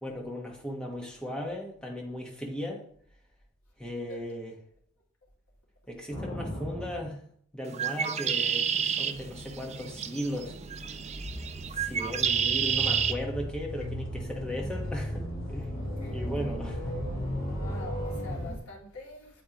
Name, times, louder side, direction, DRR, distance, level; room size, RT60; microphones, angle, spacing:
voice 1, 0.0-2.9 3.8-4.5 5.9-7.2 7.5-10.5 11.7-15.8 16.1-17.0, equal, 5° left, -1 dB, 1.3 m, -37 dB
sound 1, 6.1-7.1 9.1-18.6, equal, 40° left, 2.1 m, -36 dB
Bird, 7.6-13.1, right 8 dB, 30° right, 0.4 m, -30 dB
voice 2, 11.7-12.1 15.8-16.6 16.9-17.1 17.4-19.4, left 2 dB, 85° left, -3 dB, 2.5 m, -47 dB
8.8 x 7.4 x 3.0 m, 0.62 s
head